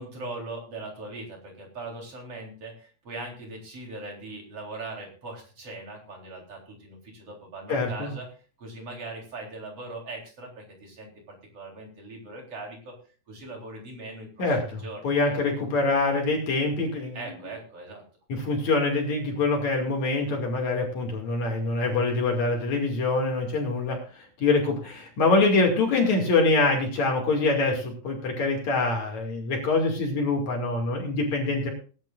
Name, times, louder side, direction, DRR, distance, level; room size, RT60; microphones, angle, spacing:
voice 1, 0.0-8.3 8.6-12.9 13.3-15.7 17.1-18.0, right 2 dB, 35° right, 0 dB, 4.3 m, -40 dB
voice 2, 7.7-8.1 14.4-17.2 18.3-24.0 24.4-31.7, left 3 dB, 50° left, 1 dB, 3.3 m, -25 dB
20.0 x 10.5 x 2.5 m, 0.38 s
omnidirectional pair, 4.7 m